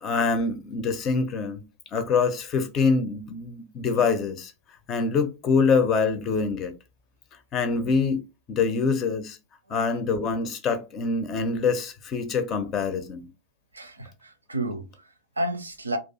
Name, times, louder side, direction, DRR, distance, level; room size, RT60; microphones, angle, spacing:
voice 1, 0.0-1.6 1.9-4.5 4.9-6.7 7.5-8.2 8.5-9.4 9.7-13.3, left 5 dB, 30° left, 0.5 m, -25 dB
voice 2, 9.7-10.0 13.7-16.0, right 1 dB, 80° right, 0.4 m, -32 dB
2.4 x 2.3 x 2.7 m
figure-of-eight pair, 90°, 0 cm